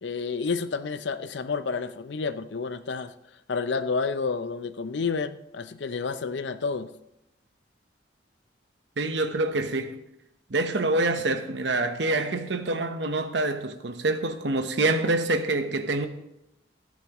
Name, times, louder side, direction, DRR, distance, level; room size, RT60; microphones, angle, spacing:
voice 1, 0.0-3.1 3.5-6.9, left 4 dB, 70° left, 0.6 m, -30 dB
voice 2, 9.0-10.0 10.5-16.1, right 2 dB, 70° right, 0.9 m, -26 dB
17.0 x 9.0 x 3.0 m
head